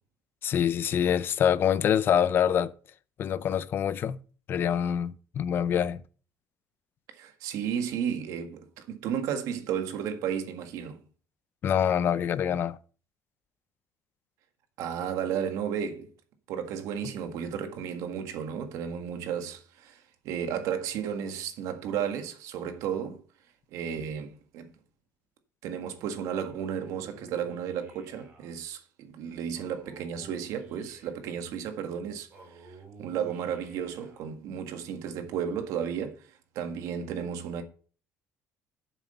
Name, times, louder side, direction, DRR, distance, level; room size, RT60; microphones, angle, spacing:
voice 1, 0.4-2.7 3.2-4.2 4.5-6.0 11.6-12.8, left 9 dB, 35° left, 0.5 m, -25 dB
voice 2, 7.2-11.0 14.8-16.1 16.5-23.2 23.7-24.7 25.6-36.3 36.5-37.6, right 8 dB, 70° right, 1.7 m, -33 dB
Male speech man speaking, 26.3-28.5 29.5-31.4 32.3-34.3, right 3 dB, 30° right, 3.9 m, -52 dB
9.4 x 7.3 x 5.5 m
cardioid pair, 175°, 6 cm